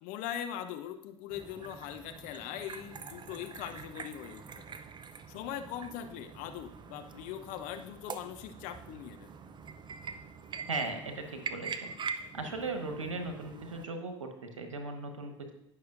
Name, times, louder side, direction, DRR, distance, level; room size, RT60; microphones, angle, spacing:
voice 1, 0.0-4.7 5.3-9.3, left 10 dB, 55° left, 6 dB, 0.9 m, -41 dB
sound 1, 1.3-13.8, right 5 dB, 30° right, 0.7 m, -44 dB
voice 2, 10.7-11.9 12.3-15.5, right 3 dB, 85° right, 5 dB, 1.3 m, -37 dB
18.0 x 6.1 x 2.6 m, 0.79 s
figure-of-eight pair, 70°, 16 cm